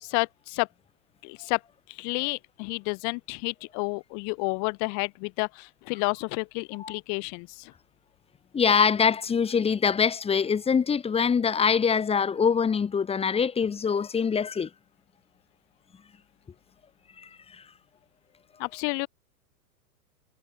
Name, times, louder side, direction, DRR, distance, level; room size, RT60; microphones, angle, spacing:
voice 1, 0.0-0.7 1.2-1.6 1.9-7.7 18.6-19.1, left 37 dB, 40° left, 1.9 m, -30 dB
voice 2, 8.5-14.7 17.2-17.3, left 6 dB, 15° left, 1.6 m, -24 dB
hypercardioid pair, 110°, 45 cm